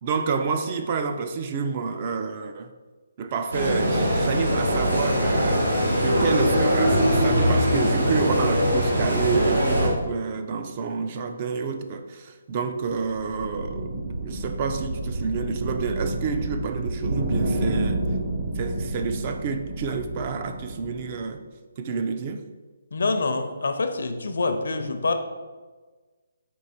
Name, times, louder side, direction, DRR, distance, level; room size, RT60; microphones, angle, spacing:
voice 1, 0.0-2.7 3.2-18.0 18.5-21.4 21.8-22.4, right 5 dB, 30° right, 0.3 m, -29 dB
sound 1, 3.5-9.9, equal, 90° right, 1.3 m, -22 dB
sound 2, 12.8-21.3, right 2 dB, 45° right, 0.8 m, -30 dB
voice 2, 22.9-25.1, left 3 dB, 70° left, 0.5 m, -26 dB
4.5 x 2.9 x 4.1 m
hypercardioid pair, 165°, 0 cm